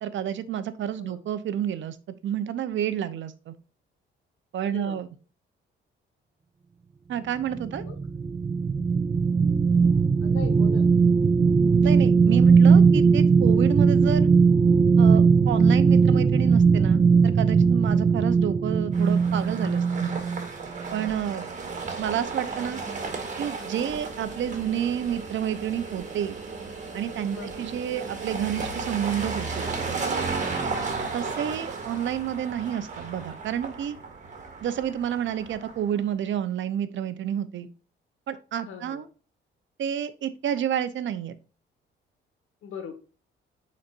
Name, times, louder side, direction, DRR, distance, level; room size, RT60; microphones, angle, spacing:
voice 1, 0.0-2.0 2.2-3.5 4.5-5.1 7.1-7.8 11.8-14.3 15.0-20.2 20.9-21.5 22.0-22.8 23.4-26.4 26.9-29.7 31.1-34.0 34.6-37.7 38.3-39.1 39.8-41.4, right 9 dB, 70° right, 12 dB, 0.8 m, -30 dB
voice 2, 4.6-5.0 7.7-8.0 10.2-11.0 27.3-27.7 38.7-39.0 42.6-42.9, left 6 dB, 80° left, 7 dB, 1.6 m, -40 dB
sound 1, 7.5-20.5 20.9-21.1, right 5 dB, 20° right, 0.4 m, -19 dB
sound 2, 18.9-35.9, right 4 dB, 35° right, 2.0 m, -34 dB
9.5 x 4.3 x 2.6 m, 0.35 s
cardioid pair, 90°, 21 cm